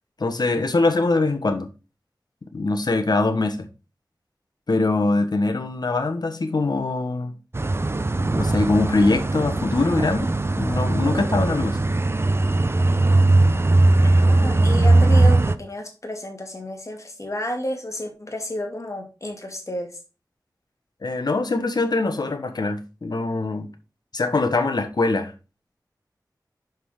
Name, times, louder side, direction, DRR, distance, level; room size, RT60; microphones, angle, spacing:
voice 1, 0.2-1.7 2.5-3.7 4.7-7.3 8.3-11.8 21.0-23.7 24.1-25.3, left 3 dB, 70° left, 1.2 m, -23 dB
sound 1, 7.5-15.5, right 2 dB, 35° right, 0.6 m, -19 dB
voice 2, 14.0-19.9, left 1 dB, 45° left, 2.3 m, -31 dB
6.0 x 5.4 x 4.9 m
wide cardioid pair, 60°, 7 cm